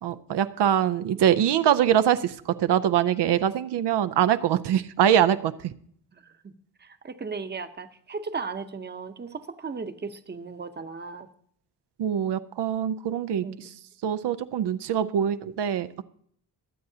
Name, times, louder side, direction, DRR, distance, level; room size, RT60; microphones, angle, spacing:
voice 1, 0.0-5.7 12.0-13.5 14.0-16.0, right 10 dB, 90° right, 11 dB, 0.6 m, -23 dB
voice 2, 6.1-6.5 6.8-11.3 13.4-13.7, right 4 dB, 25° right, 9 dB, 0.8 m, -36 dB
23.0 x 7.8 x 2.8 m, 0.63 s
wide cardioid pair, 110°, 40 cm